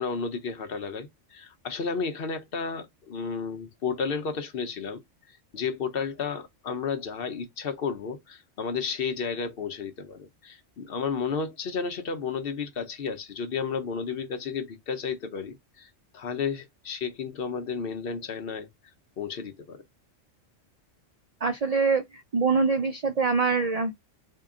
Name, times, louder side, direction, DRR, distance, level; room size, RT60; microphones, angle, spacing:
voice 1, 0.0-5.0 5.5-18.7 19.2-19.8, left 5 dB, 55° left, 0.8 m, -32 dB
voice 2, 21.4-22.0 22.3-23.9, right 4 dB, 75° right, 0.3 m, -24 dB
3.6 x 2.2 x 3.6 m
omnidirectional pair, 1.3 m